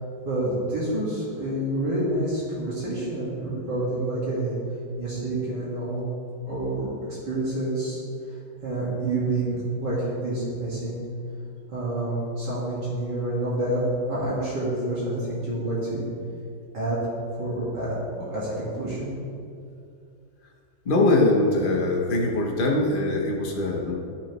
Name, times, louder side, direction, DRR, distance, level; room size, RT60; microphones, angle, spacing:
voice 1, 0.2-4.6 5.0-6.1 6.5-6.9 7.2-8.0 8.6-11.0 11.7-13.8 14.1-16.0 16.7-17.0 17.4-19.2, right 1 dB, 55° right, -8 dB, 2.3 m, -28 dB
voice 2, 20.8-23.9, left 2 dB, 90° left, -2 dB, 0.4 m, -22 dB
13.0 x 5.6 x 3.0 m, 2.4 s
omnidirectional pair, 2.3 m